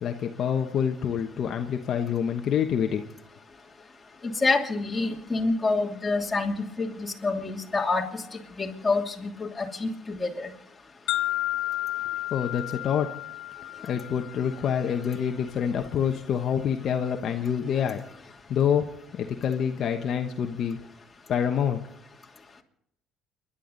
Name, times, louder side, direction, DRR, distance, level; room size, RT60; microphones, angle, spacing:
voice 1, 0.0-3.0 12.3-13.1 13.9-18.0 18.5-20.8 21.3-21.8, left 8 dB, 55° left, 4 dB, 1.1 m, -27 dB
voice 2, 4.2-10.5, left 3 dB, 20° left, 0 dB, 2.9 m, -27 dB
sound 1, 11.1-15.1, left 15 dB, 75° left, 0.5 m, -32 dB
29.5 x 11.5 x 4.0 m, 0.76 s
cardioid pair, 105°, 0 cm